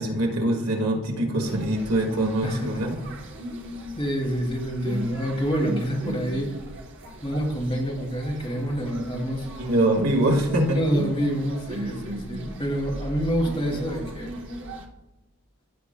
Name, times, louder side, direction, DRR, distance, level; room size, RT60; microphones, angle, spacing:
voice 1, 0.0-2.9 9.6-10.8, right 1 dB, 75° right, 1 dB, 1.7 m, -23 dB
sound 1, 1.5-14.9, right 1 dB, 55° right, 1.0 m, -37 dB
voice 2, 2.4-2.8 4.0-6.5 7.2-9.5 10.7-14.3, equal, 25° left, -1 dB, 2.3 m, -27 dB
16.0 x 6.8 x 2.2 m, 0.99 s
head